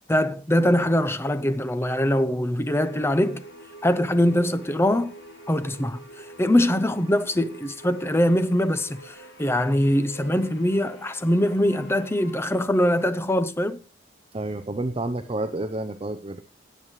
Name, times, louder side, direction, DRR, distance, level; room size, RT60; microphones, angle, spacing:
voice 1, 0.1-3.4 3.8-5.1 5.5-13.8, left 1 dB, 15° left, 0.6 m, -23 dB
sound 1, 2.7-12.6, right 2 dB, 75° left, 7.5 m, -46 dB
voice 2, 14.3-16.4, right 2 dB, 30° right, 0.6 m, -29 dB
17.5 x 9.1 x 3.2 m
head